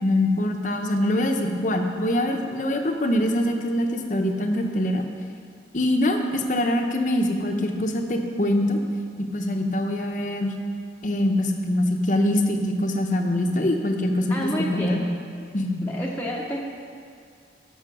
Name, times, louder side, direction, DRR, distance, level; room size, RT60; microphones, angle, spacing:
voice 1, 0.0-5.0 5.7-8.8 9.3-10.5 11.0-15.0 15.5-15.8, left 1 dB, 45° left, 4 dB, 0.9 m, -24 dB
voice 2, 14.3-15.0 15.8-16.6, equal, 10° left, -4 dB, 0.9 m, -29 dB
13.5 x 5.7 x 6.2 m, 2.3 s
head